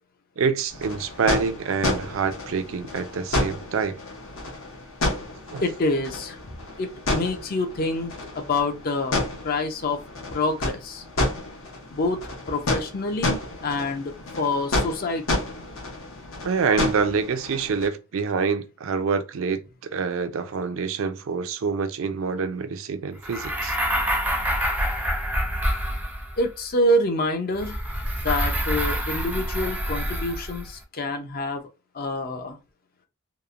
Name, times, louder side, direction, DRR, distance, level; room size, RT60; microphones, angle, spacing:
voice 1, 0.4-4.0 5.5-5.6 16.4-19.6 19.9-23.8, right 5 dB, 70° right, 0.4 m, -26 dB
sound 1, 0.7-17.9, left 2 dB, 80° left, 0.8 m, -30 dB
voice 2, 5.6-6.4 6.8-9.1 9.4-10.0 10.3-11.0 11.9-12.2 12.5-15.4 26.4-27.8 28.2-31.6 31.9-32.6, left 2 dB, 45° left, 0.5 m, -26 dB
sound 2, 23.2-26.5 27.6-30.7, equal, 10° right, 0.4 m, -26 dB
2.9 x 2.1 x 2.4 m
head